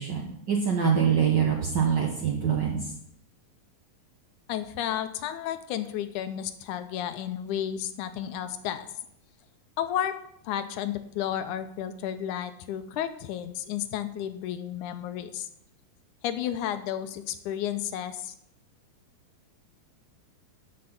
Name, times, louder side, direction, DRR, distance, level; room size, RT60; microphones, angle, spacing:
voice 1, 0.0-2.9, right 7 dB, 70° right, 0 dB, 1.0 m, -25 dB
voice 2, 4.5-8.9 9.8-10.2 10.4-15.5 16.2-18.3, left 10 dB, 80° left, 10 dB, 2.0 m, -32 dB
12.5 x 6.4 x 5.8 m, 0.75 s
omnidirectional pair, 3.8 m